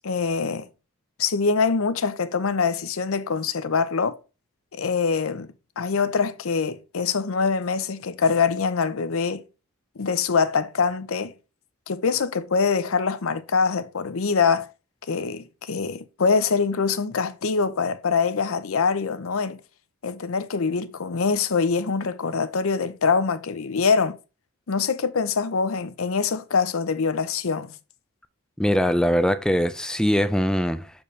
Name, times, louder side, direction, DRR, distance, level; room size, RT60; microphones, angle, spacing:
voice 1, 0.0-0.7 1.2-4.2 4.7-9.4 10.0-11.3 11.9-14.7 15.1-19.6 20.0-24.2 24.7-27.7, left 5 dB, 70° left, 0.6 m, -24 dB
voice 2, 28.6-30.9, equal, 5° left, 0.3 m, -22 dB
6.7 x 4.4 x 3.3 m
head